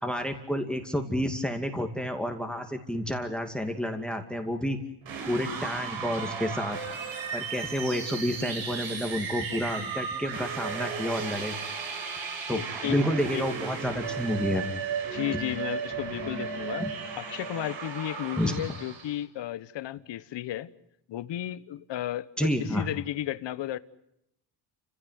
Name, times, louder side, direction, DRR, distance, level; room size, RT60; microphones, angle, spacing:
voice 1, 0.0-4.8 5.3-6.8 7.3-11.6 12.5-14.9 16.8-16.9 18.4-18.5 22.4-22.9, equal, ahead, 2.3 m, -30 dB
sound 1, 5.0-19.2, right 5 dB, 70° right, 5.9 m, -35 dB
voice 2, 12.5-13.0 13.3-13.4 15.1-16.9 17.2-20.7 21.1-23.8, left 13 dB, 60° left, 1.1 m, -34 dB
29.5 x 16.5 x 9.4 m
cardioid pair, 110°, 47 cm